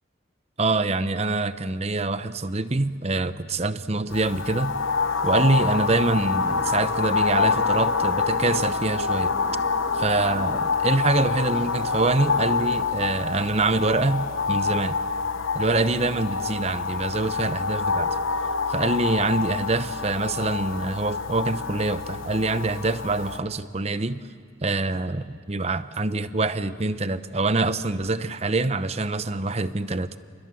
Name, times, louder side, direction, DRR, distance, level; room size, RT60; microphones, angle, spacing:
voice 1, 0.6-4.7 5.2-9.3 9.9-15.0 15.5-18.2 18.7-24.2 24.6-30.2, right 2 dB, 30° right, 13 dB, 0.8 m, -25 dB
sound 1, 4.1-23.4, left 5 dB, 90° left, 1.1 m, -26 dB
sound 2, 6.1-12.5, equal, 25° left, 5.3 m, -42 dB
29.5 x 27.5 x 7.0 m, 2.4 s
head